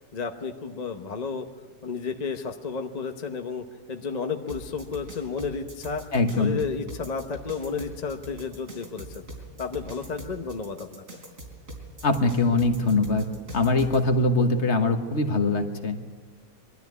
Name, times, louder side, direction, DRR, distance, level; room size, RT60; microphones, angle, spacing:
voice 1, 0.1-1.5 1.8-6.0 6.4-9.2 9.6-11.0, left 5 dB, 35° left, 4 dB, 0.9 m, -32 dB
sound 1, 4.5-14.0, right 1 dB, 70° right, 3.9 m, -42 dB
voice 2, 6.1-6.6 12.0-13.3 13.5-16.0, left 2 dB, 55° left, 7 dB, 1.6 m, -22 dB
22.0 x 13.0 x 9.4 m, 1.4 s
omnidirectional pair, 1.5 m